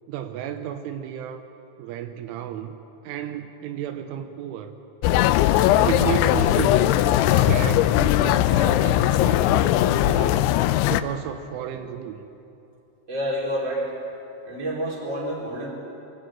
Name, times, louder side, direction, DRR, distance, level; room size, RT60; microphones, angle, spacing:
voice 1, 0.1-1.4 1.8-2.8 3.0-4.8 5.8-6.9 7.4-10.3 10.9-12.2, right 10 dB, 85° right, 7 dB, 3.4 m, -32 dB
sound 1, 5.0-11.0, left 13 dB, 85° left, 2.9 m, -19 dB
voice 2, 13.1-14.0 14.4-15.7, equal, 25° right, -3 dB, 4.4 m, -28 dB
24.0 x 16.5 x 9.0 m, 2.8 s
omnidirectional pair, 5.5 m